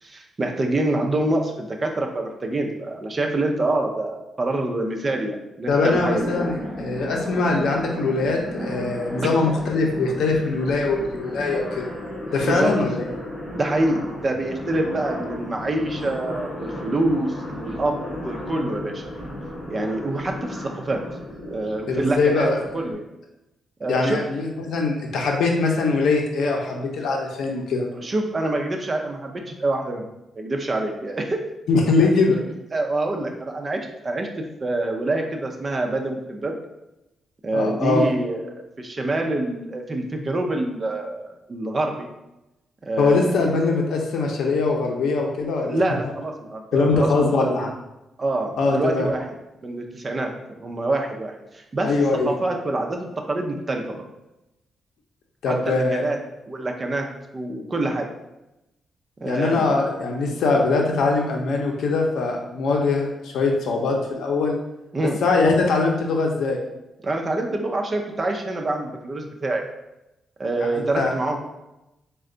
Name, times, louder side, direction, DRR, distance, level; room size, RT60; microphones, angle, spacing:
voice 1, 0.0-6.3 12.4-12.7 13.5-18.0 18.2-19.0 19.7-21.0 21.5-22.5 22.7-23.0 23.8-24.2 27.9-30.1 30.4-31.5 32.0-32.1 32.7-36.6 37.4-42.1 42.8-43.4 45.6-47.7 48.2-49.3 49.6-50.3 50.6-51.9 52.2-54.1 55.5-56.2 56.5-57.1 57.3-58.1 59.2-59.8 64.9-65.2 67.0-69.6 70.4-71.4, right 2 dB, 25° right, 2 dB, 0.5 m, -26 dB
voice 2, 5.7-11.9 12.3-13.0 21.9-22.6 23.9-27.9 31.7-32.4 37.5-38.1 43.0-45.8 46.7-47.7 48.6-49.1 51.8-52.3 55.4-56.0 59.3-64.6 65.2-66.6 70.6-70.7 70.9-71.1, left 3 dB, 80° left, 1 dB, 0.6 m, -22 dB
sound 1, 5.7-22.9, equal, 35° left, 1.1 m, -34 dB
4.3 x 2.2 x 3.7 m, 0.94 s
wide cardioid pair, 155°, 0 cm